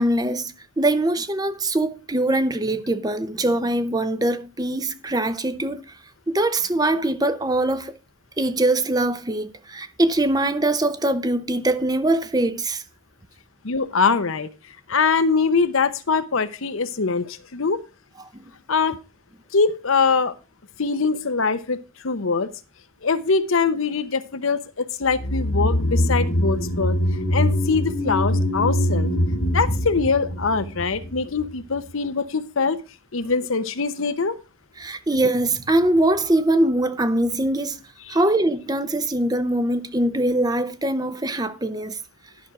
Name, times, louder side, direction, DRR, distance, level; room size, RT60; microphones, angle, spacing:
voice 1, 0.0-6.0 6.3-7.9 8.4-12.8 34.8-37.8 38.1-42.0, right 1 dB, 20° right, 0.7 m, -22 dB
voice 2, 13.6-14.5 14.9-17.8 18.7-18.9 19.5-20.3 20.8-22.5 23.0-27.0 27.3-29.1 29.5-32.8 33.1-34.4, left 4 dB, 70° left, 0.8 m, -23 dB
sound 1, 25.1-31.5 31.8-31.9, left 1 dB, 85° left, 2.1 m, -23 dB
11.5 x 6.1 x 4.8 m
head